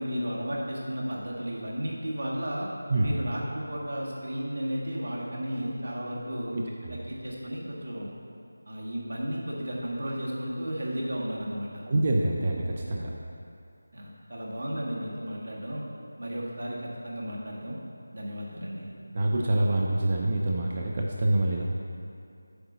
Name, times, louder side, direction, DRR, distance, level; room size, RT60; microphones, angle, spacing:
voice 1, 0.0-2.7 3.0-6.6 7.1-8.1 8.6-11.8 13.9-15.8 16.2-17.8 18.1-18.9, equal, 80° right, -4 dB, 1.7 m, -33 dB
voice 2, 6.5-7.0 11.9-13.1 19.1-21.6, right 1 dB, 30° right, -1 dB, 0.5 m, -26 dB
7.9 x 3.9 x 5.5 m, 2.5 s
figure-of-eight pair, 175°, 0 cm